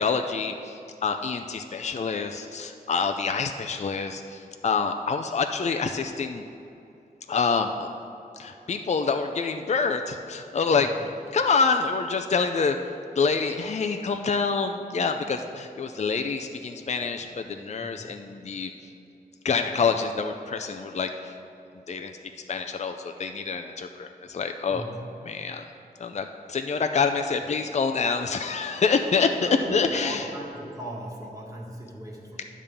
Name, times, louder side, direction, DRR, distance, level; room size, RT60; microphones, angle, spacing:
voice 1, 0.0-6.4 7.3-7.9 8.4-10.9 11.3-12.8 13.1-18.7 19.4-21.3 21.9-22.1 22.5-24.8 25.3-25.6 26.0-30.2, left 5 dB, 45° left, 6 dB, 0.4 m, -26 dB
voice 2, 10.7-11.0 11.4-11.6 17.2-17.3 17.8-18.3 24.6-25.1 29.5-32.4, right 1 dB, 20° right, -3 dB, 1.4 m, -38 dB
10.5 x 3.7 x 6.8 m, 2.7 s
wide cardioid pair, 75°, 16 cm